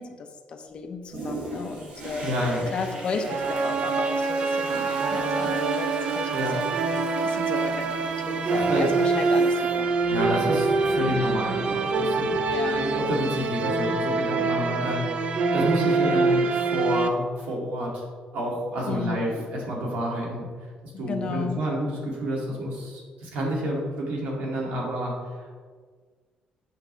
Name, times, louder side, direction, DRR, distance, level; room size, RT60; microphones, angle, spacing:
voice 1, 0.0-2.3 2.7-9.9 11.1-11.4 12.5-13.0 16.0-16.4 18.9-19.5 20.9-21.6, left 4 dB, 40° left, 5 dB, 0.7 m, -34 dB
Toilet flush, 1.1-13.5 14.0-14.1, right 2 dB, 60° right, 2.2 m, -41 dB
voice 2, 2.2-2.7 6.3-6.5 8.5-8.9 10.1-18.0 18.3-20.5 20.8-25.1 25.4-25.6, equal, 85° right, -3 dB, 2.3 m, -29 dB
sound 1, 3.3-17.1, right 4 dB, 45° right, 0.4 m, -25 dB
8.3 x 6.1 x 3.3 m, 1.6 s
cardioid pair, 170°, 3 cm